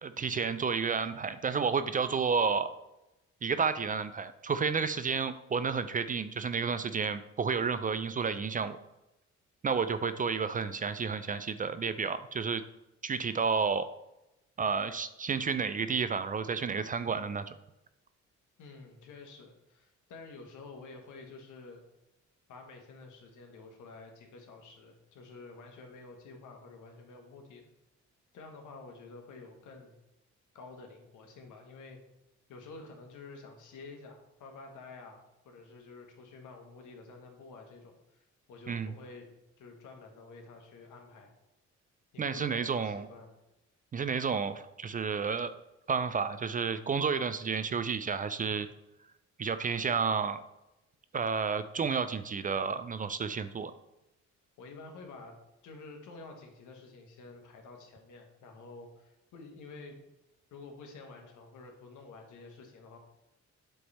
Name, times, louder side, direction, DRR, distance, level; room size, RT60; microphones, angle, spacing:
voice 1, 0.0-2.7 3.4-8.8 9.6-12.6 13.0-13.9 14.6-17.4 38.7-38.9 42.2-43.1 43.9-45.5 45.9-48.7 49.4-50.4 51.1-53.7, right 5 dB, 30° right, 12 dB, 0.4 m, -31 dB
voice 2, 18.6-21.8 22.5-27.7 28.3-30.0 30.5-32.0 32.5-39.3 39.6-41.3 42.1-43.4 54.6-55.4 55.6-60.0 60.5-63.0, left 3 dB, 80° left, 3 dB, 1.3 m, -50 dB
7.8 x 3.3 x 4.1 m, 0.92 s
cardioid pair, 90°, 30 cm